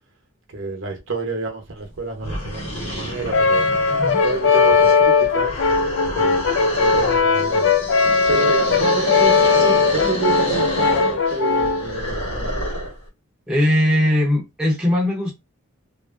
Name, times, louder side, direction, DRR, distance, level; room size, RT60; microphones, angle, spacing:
voice 1, 0.5-3.7 4.2-5.6 6.2-7.7 8.3-12.7, right 3 dB, 60° right, 0.8 m, -29 dB
sound 1, 1.8-1.9 2.2-13.0, equal, 80° left, 1.1 m, -28 dB
Brass instrument, 3.3-11.9, left 5 dB, 60° left, 0.4 m, -18 dB
voice 2, 13.5-15.3, left 1 dB, 5° right, 0.6 m, -19 dB
2.9 x 2.4 x 2.4 m
head